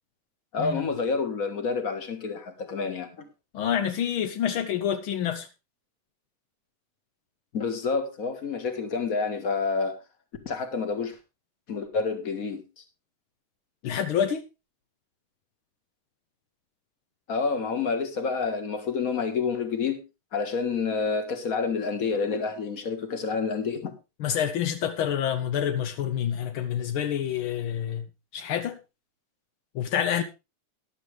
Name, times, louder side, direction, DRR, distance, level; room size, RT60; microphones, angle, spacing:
voice 1, 0.5-3.3 7.5-10.0 10.4-11.2 11.7-12.6 17.3-20.0 20.3-23.9, left 5 dB, 35° left, 1.6 m, -28 dB
voice 2, 3.5-5.5 13.8-14.4 24.2-28.1 28.3-28.8 29.7-30.2, left 9 dB, 85° left, 1.1 m, -27 dB
13.0 x 11.5 x 3.4 m
omnidirectional pair, 3.5 m